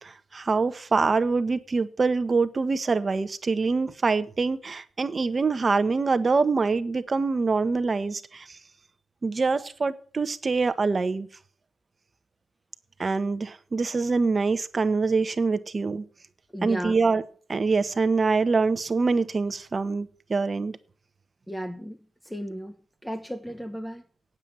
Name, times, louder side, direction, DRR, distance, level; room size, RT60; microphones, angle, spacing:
voice 1, 0.0-8.6 9.2-11.3 13.0-16.0 16.6-17.2 17.5-20.8, right 4 dB, 30° right, 1.1 m, -25 dB
voice 2, 16.5-17.0 21.5-22.0 22.2-22.7 23.0-24.0, equal, 5° left, 0.9 m, -34 dB
9.0 x 7.8 x 8.8 m
cardioid pair, 115°, 0 cm